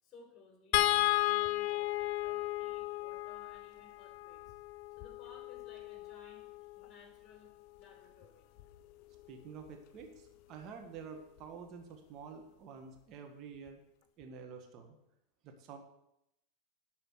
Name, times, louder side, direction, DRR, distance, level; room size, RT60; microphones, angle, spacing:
voice 1, 0.0-7.5 7.8-8.5, left 4 dB, 30° left, 0 dB, 4.3 m, -59 dB
sound 1, 0.7-7.1 8.6-8.8 9.1-9.3, left 17 dB, 60° left, 0.5 m, -34 dB
voice 2, 9.3-13.8 14.2-14.9 15.4-15.8, right 6 dB, 45° right, 4 dB, 1.7 m, -49 dB
11.0 x 5.6 x 6.4 m, 0.82 s
hypercardioid pair, 110°, 0 cm